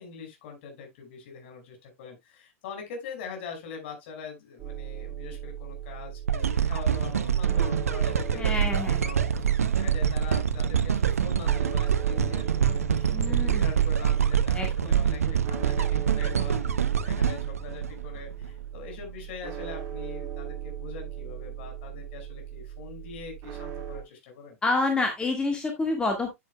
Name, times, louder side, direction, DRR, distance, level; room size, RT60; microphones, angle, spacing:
voice 1, 0.0-8.7 9.0-24.6, left 5 dB, 50° left, 5.2 m, -43 dB
sound 1, 4.6-24.0, right 10 dB, 35° right, 1.9 m, -38 dB
sound 2, 6.3-18.5 19.0-19.1, right 8 dB, 75° right, 0.8 m, -25 dB
voice 2, 8.3-9.0 13.1-13.7 14.6-15.0 15.3-15.4 24.6-26.3, left 3 dB, 10° left, 1.7 m, -28 dB
9.3 x 8.8 x 2.3 m
figure-of-eight pair, 100°, 8 cm